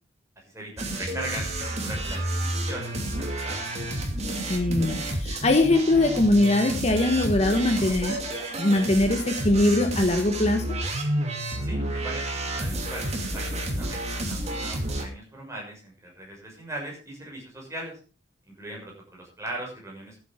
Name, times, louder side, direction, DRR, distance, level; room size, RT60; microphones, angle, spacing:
voice 1, 0.4-2.2 2.5-3.6 11.6-18.0 18.5-20.2, right 1 dB, 15° right, -1 dB, 6.3 m, -39 dB
sound 1, 0.8-15.0, right 1 dB, 35° right, 2.9 m, -30 dB
voice 2, 4.5-8.2 8.6-10.6, left 2 dB, 35° left, 5 dB, 1.3 m, -22 dB
14.0 x 8.7 x 5.0 m, 0.36 s
head